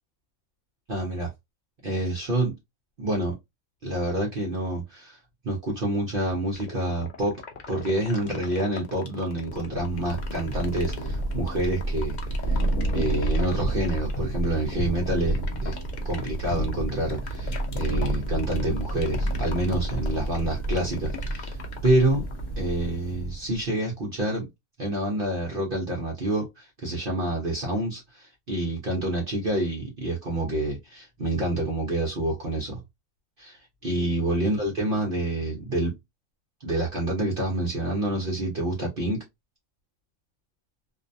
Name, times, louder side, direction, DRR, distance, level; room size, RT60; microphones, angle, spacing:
voice 1, 0.9-1.3 1.8-2.6 3.0-3.3 3.8-5.2 5.4-7.4 7.7-12.2 12.4-12.6 12.9-15.8 16.0-21.6 21.8-22.3 22.6-24.5 24.8-32.8 33.4-36.0 36.6-39.2, right 1 dB, 50° right, 0.7 m, -27 dB
sound 1, 6.6-22.5, left 6 dB, 80° left, 0.4 m, -40 dB
Thunder / Rain, 9.5-23.6, right 1 dB, 55° left, 1.0 m, -30 dB
2.6 x 2.1 x 2.5 m
omnidirectional pair, 1.5 m